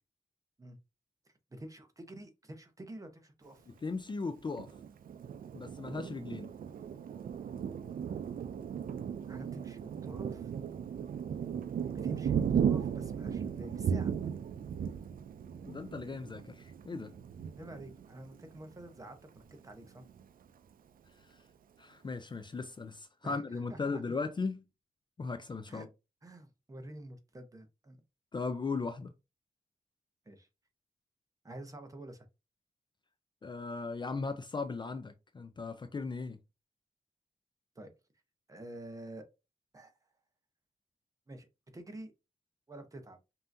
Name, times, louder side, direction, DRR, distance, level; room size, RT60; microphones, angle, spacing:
voice 1, 1.5-3.6 9.3-10.5 12.0-14.1 17.6-20.0 23.2-23.4 23.7-24.0 25.7-25.9 26.2-28.0 30.3-30.5 31.4-32.3 37.8-37.9 38.5-39.2 39.7-39.9 41.3-42.1 42.7-43.2, right 1 dB, 25° right, 0.8 m, -48 dB
voice 2, 3.7-4.7 5.5-6.5 15.6-17.1 21.3-21.4 21.8-24.6 25.2-25.9 28.3-29.1 33.4-36.4, left 4 dB, 35° left, 0.4 m, -37 dB
Thunder, 4.5-18.9 19.4-19.5 19.8-20.4, right 7 dB, 85° right, 0.4 m, -36 dB
5.4 x 2.7 x 2.6 m
wide cardioid pair, 160°, 14 cm